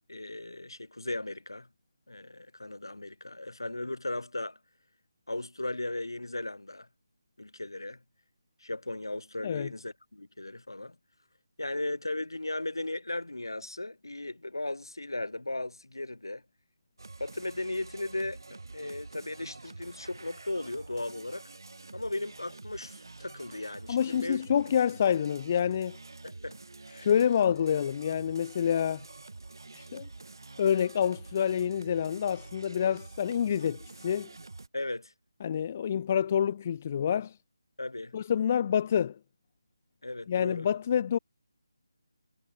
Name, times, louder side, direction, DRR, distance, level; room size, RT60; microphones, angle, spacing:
voice 1, 0.1-1.7 2.1-4.6 5.3-6.9 7.4-8.0 8.6-11.0 11.6-16.4 17.2-21.4 21.9-24.4 26.2-26.6 26.9-27.1 34.7-35.1 37.8-38.1 40.0-40.7, left 2 dB, 80° left, 5.7 m, -36 dB
sound 1, 17.0-34.7, right 3 dB, 70° right, 2.0 m, -48 dB
voice 2, 23.9-26.0 26.9-29.0 29.7-30.1 30.6-34.3 35.4-37.4 38.1-39.2 40.3-41.2, left 8 dB, 30° left, 0.9 m, -27 dB
figure-of-eight pair, 155°, 2 cm